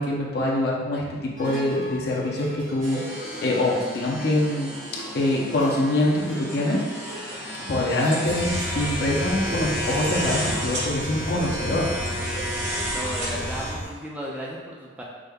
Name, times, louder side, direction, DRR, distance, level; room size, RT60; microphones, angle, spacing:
voice 1, 0.0-4.7 5.1-6.8 7.7-11.9, left 1 dB, 55° left, -3 dB, 0.5 m, -24 dB
sound 1, 1.4-12.8, right 1 dB, 45° right, 0.7 m, -38 dB
sound 2, 2.8-13.7, equal, 80° right, 1.1 m, -32 dB
sound 3, 8.2-13.9, left 1 dB, 75° left, 1.1 m, -33 dB
voice 2, 12.7-15.0, equal, 5° right, -4 dB, 0.3 m, -35 dB
4.8 x 2.1 x 2.2 m, 1.4 s
head